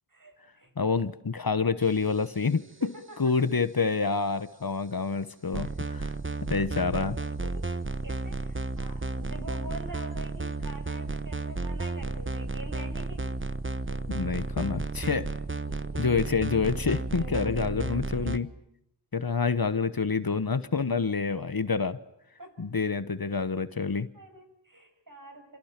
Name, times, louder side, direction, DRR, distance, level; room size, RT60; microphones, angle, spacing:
voice 1, 0.1-0.7 2.8-3.2 5.6-6.0 7.4-7.7 8.0-13.3 13.9-14.0 15.7-16.0 17.1-17.7 22.4-22.6 24.1-25.6, right 1 dB, 45° right, 5 dB, 6.6 m, -45 dB
voice 2, 0.8-2.9 3.2-6.1 6.5-7.2 14.1-15.3 16.0-18.5 19.1-22.0 22.6-24.1, left 4 dB, 50° left, 13 dB, 1.2 m, -27 dB
sound 1, 5.5-18.4, right 3 dB, 25° right, 1.2 m, -33 dB
28.0 x 28.0 x 6.0 m, 0.78 s
wide cardioid pair, 45°, 44 cm